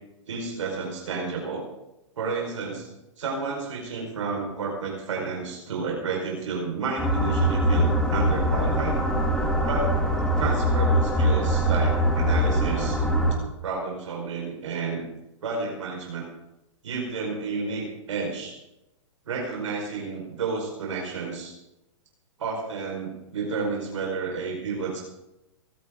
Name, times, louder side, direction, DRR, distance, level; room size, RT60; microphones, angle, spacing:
voice 1, 0.3-1.6 2.2-2.9 3.2-9.0 9.6-9.9 10.4-13.0 13.6-15.0 15.4-16.2 16.8-18.6 19.3-21.5 22.4-25.0, right 4 dB, 70° right, -1 dB, 5.0 m, -31 dB
sound 1, 7.0-13.3, equal, 5° left, 2.7 m, -22 dB
24.0 x 13.0 x 3.9 m, 0.94 s
hypercardioid pair, 120°, 16 cm